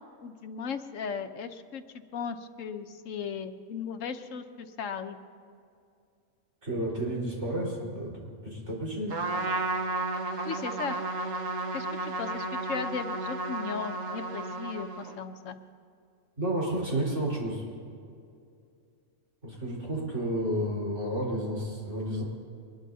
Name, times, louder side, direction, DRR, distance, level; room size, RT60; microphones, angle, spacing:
voice 1, 0.2-1.8 2.1-5.2 10.4-11.0 11.7-15.6, left 6 dB, 80° left, 8 dB, 1.2 m, -36 dB
voice 2, 6.6-9.2 16.4-17.7 19.4-22.2, right 1 dB, 65° right, -4 dB, 4.8 m, -31 dB
Trumpet, 9.1-15.3, right 2 dB, 80° right, 1.6 m, -33 dB
23.5 x 20.5 x 2.8 m, 2.4 s
omnidirectional pair, 1.3 m